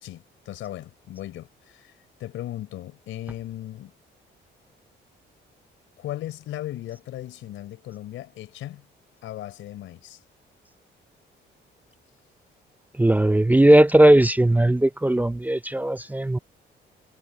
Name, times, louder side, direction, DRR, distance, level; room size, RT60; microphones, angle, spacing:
voice 1, 0.0-1.9 2.2-3.9 6.0-8.8 9.2-10.2, left 13 dB, 85° left, 4.4 m, -37 dB
voice 2, 13.0-16.4, right 1 dB, 10° right, 0.6 m, -17 dB
cardioid pair, 90°, 20 cm